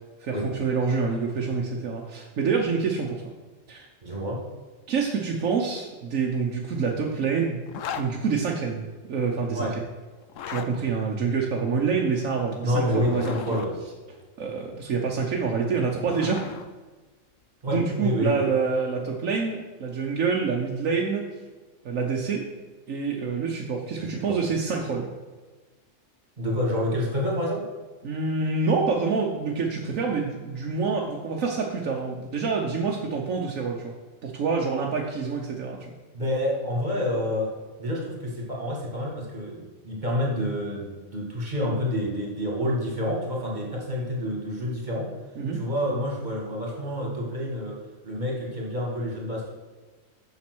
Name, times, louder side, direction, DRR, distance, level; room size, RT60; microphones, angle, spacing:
voice 1, 0.2-3.2 3.7-3.9 4.9-7.6 7.9-8.8 9.1-9.7 10.5-13.6 14.4-16.4 17.7-21.3 21.8-22.5 22.9-25.1 28.0-33.9 34.2-35.9 45.4-45.6, right 5 dB, 85° right, -1 dB, 1.3 m, -27 dB
voice 2, 4.0-4.5 9.5-9.7 12.6-13.7 17.6-18.5 24.0-24.4 26.4-27.7 36.1-37.5 37.8-45.1 45.5-47.8 48.0-49.5, left 1 dB, 35° right, -2 dB, 2.1 m, -28 dB
Zipper (clothing), 7.7-8.1 10.2-10.7 12.8-13.7 15.6-16.7, left 8 dB, 75° left, 1.0 m, -36 dB
7.3 x 6.4 x 6.1 m, 1.3 s
omnidirectional pair, 1.3 m